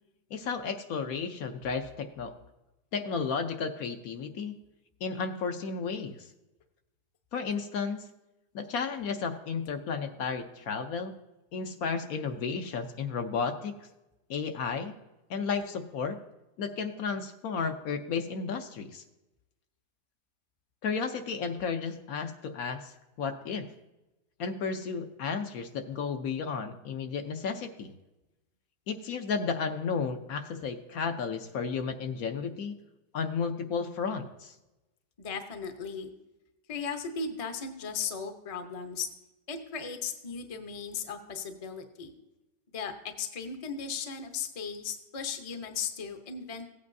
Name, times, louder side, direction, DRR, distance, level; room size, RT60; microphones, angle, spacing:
voice 1, 0.3-2.3 2.9-4.6 5.0-6.3 7.3-8.0 8.5-11.1 11.5-13.7 14.3-14.9 15.3-16.2 16.6-19.0 20.8-22.9 23.2-23.7 24.4-27.9 28.9-32.8 33.1-34.5, left 5 dB, 65° left, 6 dB, 1.1 m, -33 dB
voice 2, 35.2-36.1 36.7-39.1 39.5-42.1 42.7-46.7, left 6 dB, 30° left, 6 dB, 0.7 m, -36 dB
16.0 x 8.6 x 2.7 m, 0.99 s
omnidirectional pair, 1.7 m